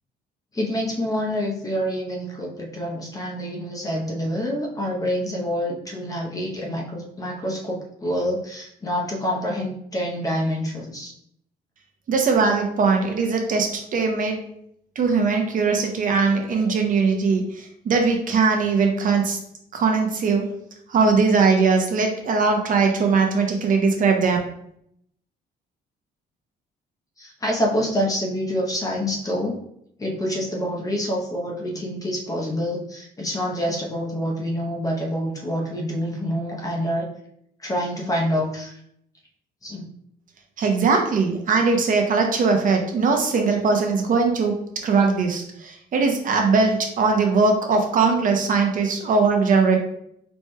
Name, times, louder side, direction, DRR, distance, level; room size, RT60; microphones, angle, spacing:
voice 1, 0.5-11.1 27.2-29.6 30.0-37.1 37.6-38.8 39.6-39.8, equal, 20° left, -1 dB, 0.7 m, -27 dB
voice 2, 12.1-14.4 15.0-19.4 19.7-20.5 20.9-24.4 40.6-49.8, right 4 dB, 50° right, 3 dB, 0.7 m, -20 dB
4.2 x 3.1 x 2.2 m, 0.72 s
cardioid pair, 120°, 18 cm